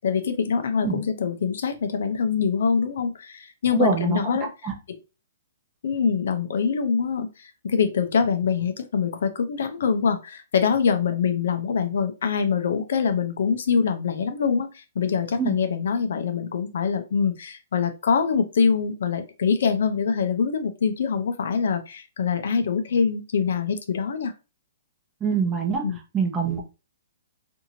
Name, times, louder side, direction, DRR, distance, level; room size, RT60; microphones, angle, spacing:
voice 1, 0.0-4.5 5.8-24.3 25.8-26.0, left 6 dB, 70° left, 8 dB, 0.5 m, -24 dB
voice 2, 3.8-4.2 4.6-4.7 15.4-15.5 25.2-25.9 26.1-26.6, right 5 dB, 15° right, 1 dB, 0.7 m, -24 dB
2.8 x 2.6 x 2.7 m, 0.30 s
hypercardioid pair, 145°, 0 cm